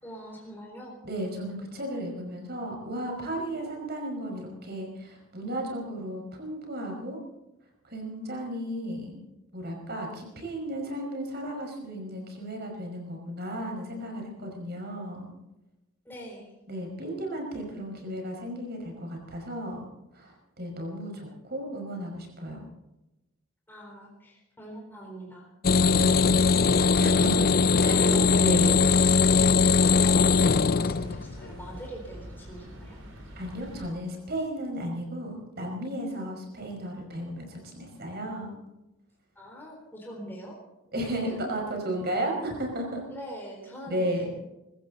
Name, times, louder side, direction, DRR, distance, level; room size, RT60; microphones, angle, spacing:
voice 1, 0.0-0.9 16.1-16.5 23.7-25.5 27.8-33.0 39.4-40.6 41.3-41.6 43.1-44.3, equal, 10° left, -1 dB, 3.8 m, -43 dB
voice 2, 1.0-7.2 7.8-9.2 9.5-15.3 16.7-19.8 20.1-22.7 25.8-26.4 27.0-27.6 27.8-28.8 33.4-38.5 40.9-43.0 43.9-44.3, right 1 dB, 50° right, 2 dB, 5.3 m, -34 dB
sound 1, 25.6-31.5 31.7-31.9, left 5 dB, 45° left, 0.5 m, -21 dB
sound 2, 25.7-33.9, equal, 70° right, 4.6 m, -45 dB
24.0 x 15.0 x 4.0 m, 0.96 s
head